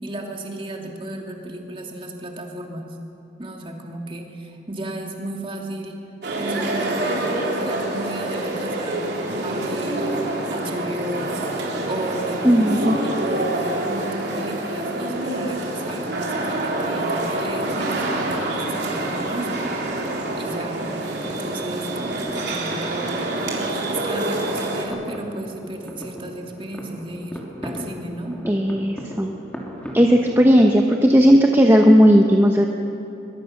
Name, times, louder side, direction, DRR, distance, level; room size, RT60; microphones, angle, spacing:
voice 1, 0.0-2.9 3.4-6.0 6.4-9.1 9.4-10.2 10.5-11.3 11.8-12.7 13.0-20.0 20.4-20.8 21.2-23.2 23.9-28.5, right 1 dB, 30° right, 1 dB, 2.5 m, -33 dB
sound 1, 6.2-24.8, right 2 dB, 60° right, 3.7 m, -26 dB
voice 2, 12.4-13.0 28.5-29.3 29.9-32.7, equal, 15° right, 2 dB, 1.0 m, -15 dB
sound 2, 15.1-30.7, equal, 5° left, 2.8 m, -39 dB
22.5 x 22.5 x 6.6 m, 2.9 s
head